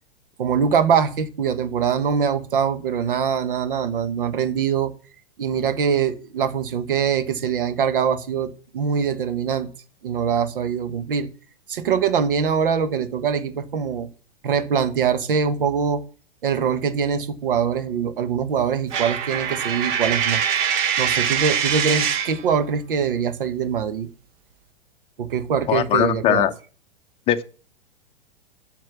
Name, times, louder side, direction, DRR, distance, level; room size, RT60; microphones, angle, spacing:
voice 1, 0.4-4.9 5.4-9.7 10.0-11.3 11.7-14.1 14.4-16.0 16.4-20.4 21.0-24.1 25.2-26.5, right 7 dB, 60° right, 11 dB, 1.3 m, -23 dB
Coin (dropping), 18.9-22.4, right 8 dB, 35° right, 1.1 m, -23 dB
voice 2, 25.7-26.5 27.3-27.4, left 10 dB, 20° left, 9 dB, 0.7 m, -20 dB
7.6 x 6.6 x 7.1 m, 0.39 s
figure-of-eight pair, 110°, 31 cm